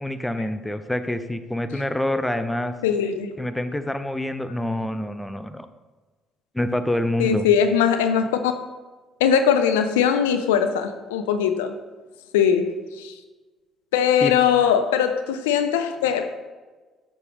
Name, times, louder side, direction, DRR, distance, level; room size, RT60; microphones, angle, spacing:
voice 1, 0.0-2.7 3.4-5.7 6.5-7.5 14.2-14.3, left 1 dB, 10° left, 10 dB, 0.6 m, -26 dB
voice 2, 2.8-3.3 7.2-8.5 9.2-11.7 12.3-13.1 13.9-16.3, left 8 dB, 85° left, 9 dB, 0.4 m, -20 dB
6.8 x 5.9 x 3.4 m, 1.3 s
hypercardioid pair, 50°, 0 cm